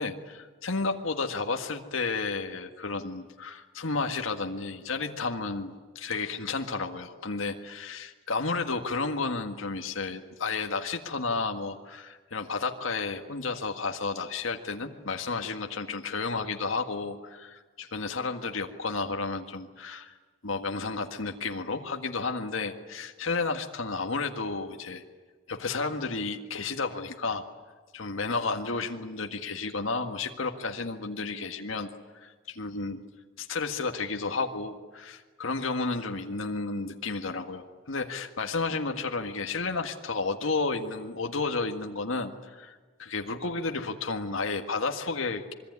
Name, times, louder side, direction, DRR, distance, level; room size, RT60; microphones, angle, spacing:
voice 1, 0.0-20.1 20.4-25.0 25.5-27.4 27.9-31.9 32.1-33.0 33.4-45.5, left 4 dB, 90° left, 4 dB, 1.8 m, -32 dB
26.0 x 23.0 x 9.6 m, 1.4 s
head